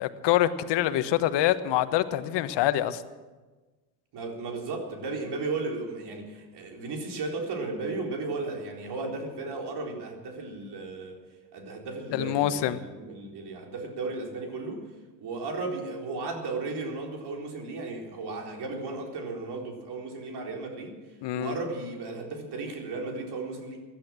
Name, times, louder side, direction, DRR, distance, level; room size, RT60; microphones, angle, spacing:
voice 1, 0.0-3.0 12.1-12.8 21.2-21.6, left 13 dB, 55° left, 12 dB, 1.2 m, -25 dB
voice 2, 4.1-11.2 11.5-14.8 15.2-20.9 21.3-23.8, right 3 dB, 50° right, 1 dB, 4.1 m, -35 dB
16.5 x 11.5 x 7.6 m, 1.3 s
hypercardioid pair, 75°, 49 cm